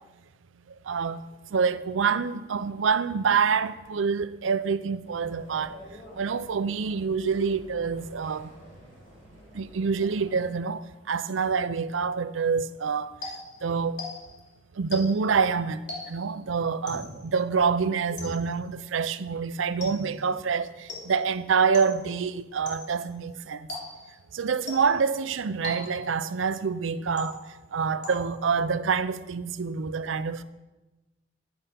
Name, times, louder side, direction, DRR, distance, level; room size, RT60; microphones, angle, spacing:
voice 1, 0.9-1.2 1.5-5.8 6.2-8.5 9.5-13.1 13.6-14.0 14.8-23.7 24.3-27.4 27.7-30.4, right 5 dB, 85° right, 0.5 m, -26 dB
sound 1, 5.0-10.5, equal, 40° left, 3.1 m, -49 dB
sound 2, 13.2-14.5 14.9-15.3 15.9-16.4 16.9-17.3 18.2-18.7 19.8-20.3 20.9-21.3 21.7-22.1 22.7-23.1 23.7-24.2 24.7-25.1 25.6-26.2 27.2-27.7 28.0-28.5, left 2 dB, 65° left, 3.2 m, -40 dB
11.0 x 6.9 x 5.4 m
head